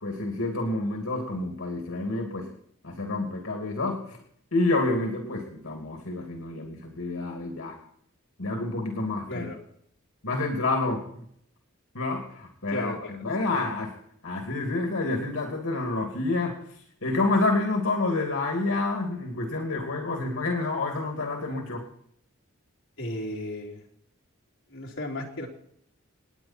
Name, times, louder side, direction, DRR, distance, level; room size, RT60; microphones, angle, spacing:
voice 1, 0.0-2.5 2.8-4.2 4.5-7.8 8.4-9.5 10.2-11.0 11.9-13.9 14.2-16.5 17.0-21.8, left 2 dB, 90° left, 2 dB, 2.6 m, -28 dB
voice 2, 9.3-9.6 12.7-13.7 23.0-23.8 24.7-25.5, left 1 dB, 70° left, -2 dB, 3.4 m, -35 dB
29.0 x 9.8 x 4.5 m, 0.68 s
head